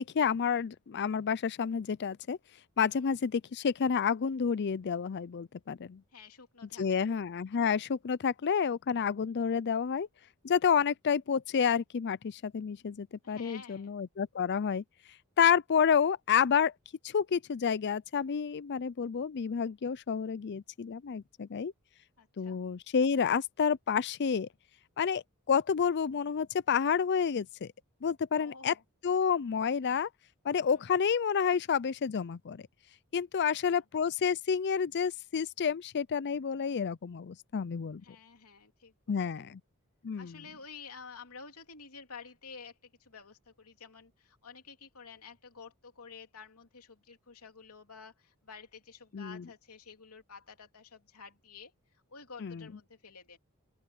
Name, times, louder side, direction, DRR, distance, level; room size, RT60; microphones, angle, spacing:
voice 1, 0.0-2.4 2.8-6.0 6.8-10.1 10.4-14.8 15.4-16.7 17.0-21.7 22.4-24.5 25.0-27.7 28.0-28.7 29.0-30.1 30.4-32.7 33.1-38.0 39.1-39.6 40.0-40.4 49.1-49.5 52.4-52.7, left 7 dB, 50° left, 0.4 m, -29 dB
voice 2, 6.1-7.1 13.2-13.9 22.2-22.6 28.4-28.8 30.6-30.8 33.3-33.8 38.0-39.3 40.2-51.7 52.1-53.4, left 5 dB, 80° left, 3.1 m, -51 dB
open air
head